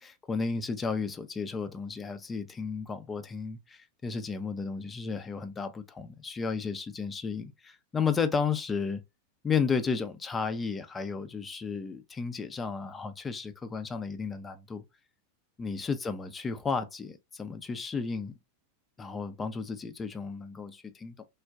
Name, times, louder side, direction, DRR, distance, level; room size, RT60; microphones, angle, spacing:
voice 1, 0.0-9.0 9.4-14.8 15.6-18.3 19.0-21.2, left 5 dB, 15° left, 0.5 m, -33 dB
3.5 x 2.2 x 2.4 m
figure-of-eight pair, 90°, 0 cm